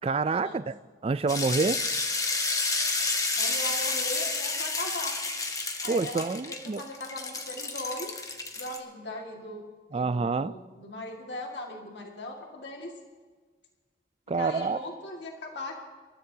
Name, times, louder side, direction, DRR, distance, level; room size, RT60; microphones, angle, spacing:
voice 1, 0.0-0.7 1.0-1.8 5.9-6.8 9.9-10.5 14.3-14.8, right 4 dB, 30° right, 0.3 m, -27 dB
sound 1, 1.3-8.8, left 3 dB, 20° left, 1.2 m, -30 dB
voice 2, 3.4-5.2 5.8-8.1 8.6-9.6 9.9-12.9 14.3-15.8, left 1 dB, 70° left, 2.0 m, -39 dB
27.0 x 14.0 x 2.8 m
head